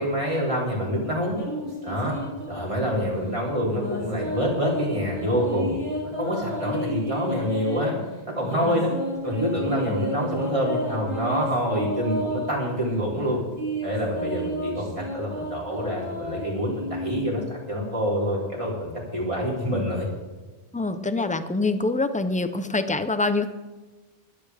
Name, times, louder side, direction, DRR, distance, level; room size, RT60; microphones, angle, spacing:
voice 1, 0.0-1.4 1.8-2.1 2.5-8.0 8.4-8.9 9.2-13.4 13.8-20.1, equal, 30° right, -4 dB, 3.6 m, -26 dB
sound 1, 1.3-2.9 3.6-7.9 8.4-12.6 13.2-17.4, equal, 65° right, 5.7 m, -32 dB
voice 2, 20.7-23.4, left 3 dB, 10° left, 10 dB, 0.4 m, -25 dB
25.0 x 8.6 x 3.5 m, 1.2 s
omnidirectional pair, 1.0 m